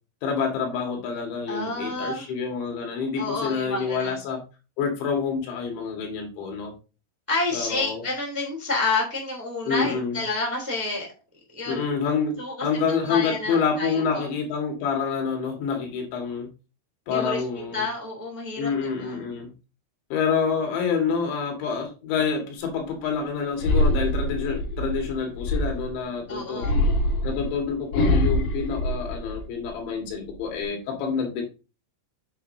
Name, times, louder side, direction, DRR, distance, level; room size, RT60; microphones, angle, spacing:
voice 1, 0.2-4.4 4.8-6.7 7.5-8.0 9.7-10.2 11.7-12.4 12.6-16.5 17.1-17.8 18.6-19.5 20.1-26.7 27.2-31.4, left 6 dB, 80° left, 2 dB, 4.2 m, -27 dB
voice 2, 1.5-2.3 3.1-4.2 7.3-11.1 11.5-11.9 12.4-12.5 13.0-14.3 17.1-19.2 26.3-26.8, left 3 dB, 5° right, -1 dB, 2.0 m, -29 dB
sound 1, 23.6-26.0 26.6-29.7 30.1-30.6, left 1 dB, 55° left, 2.8 m, -24 dB
8.4 x 7.4 x 2.7 m, 0.31 s
omnidirectional pair, 5.3 m